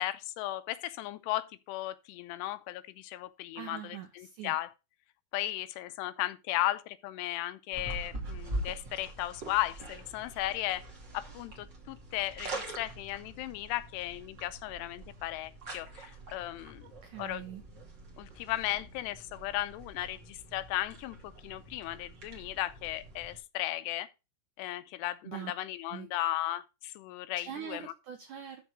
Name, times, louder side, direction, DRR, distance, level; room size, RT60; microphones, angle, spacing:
voice 1, 0.0-4.7 5.3-10.8 11.1-16.8 17.2-17.4 18.2-24.1 24.6-27.9, left 15 dB, 85° left, 2.8 m, -36 dB
voice 2, 3.6-4.6 16.8-17.6 25.2-25.5 25.9-26.1 27.4-28.6, right 10 dB, 80° right, 1.8 m, -43 dB
sound 1, 7.7-23.4, right 2 dB, 30° right, 2.6 m, -44 dB
13.0 x 4.7 x 4.7 m
omnidirectional pair, 4.8 m